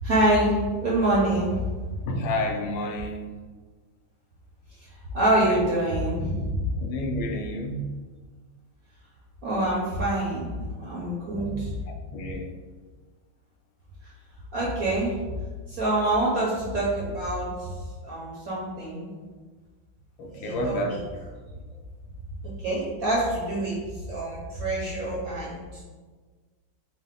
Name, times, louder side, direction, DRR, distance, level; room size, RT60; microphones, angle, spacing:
voice 1, 0.0-1.6 5.1-6.7 9.4-10.5 10.8-11.7 14.5-15.1 15.7-17.7 18.0-19.1 20.3-21.0 22.6-23.8 24.1-25.6, right 1 dB, 60° right, -6 dB, 0.9 m, -25 dB
voice 2, 2.1-3.3 5.4-5.7 6.8-7.9 11.4-12.5 20.2-21.0, left 1 dB, 85° left, 3 dB, 1.5 m, -30 dB
5.4 x 2.1 x 3.6 m, 1.4 s
omnidirectional pair, 2.3 m